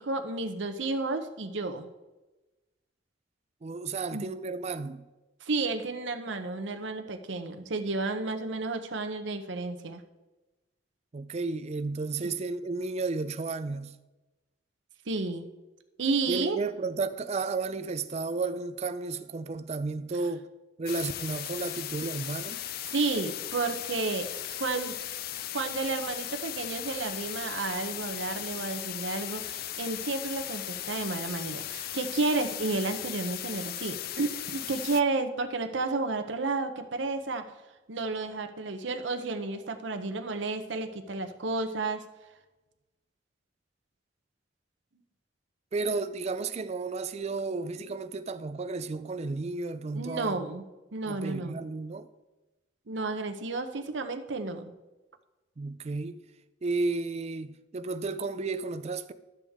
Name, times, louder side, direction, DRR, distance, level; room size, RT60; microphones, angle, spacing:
voice 1, 0.0-1.9 4.1-4.3 5.4-10.0 12.2-12.3 15.1-15.5 16.0-16.6 22.9-24.3 24.6-25.0 25.5-37.5 37.9-42.0 49.9-50.6 50.9-51.6 52.9-54.7, right 3 dB, 75° right, 0.8 m, -31 dB
voice 2, 3.6-5.0 11.1-13.9 16.3-20.5 20.8-22.6 45.7-50.4 51.1-52.1 55.6-56.2 56.6-59.1, right 3 dB, 35° right, 0.4 m, -33 dB
sound 1, 20.9-35.0, left 12 dB, 55° left, 0.4 m, -37 dB
12.0 x 7.1 x 3.6 m
head